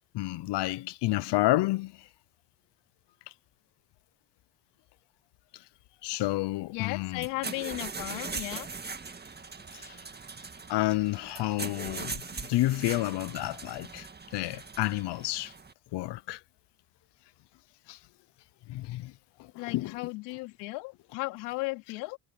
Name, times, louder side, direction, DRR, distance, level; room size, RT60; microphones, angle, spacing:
voice 1, 0.1-1.9 6.0-7.3 9.7-10.0 10.7-12.2 12.5-14.1 14.3-15.5 15.9-16.4 17.9-18.0 18.7-19.1 19.4-19.9, left 18 dB, 65° left, 0.9 m, -30 dB
voice 2, 6.7-8.7 19.6-22.2, left 24 dB, 85° left, 3.0 m, -35 dB
sound 1, 7.1-15.7, right 4 dB, 20° right, 1.9 m, -40 dB
supercardioid pair, 80°, 44 cm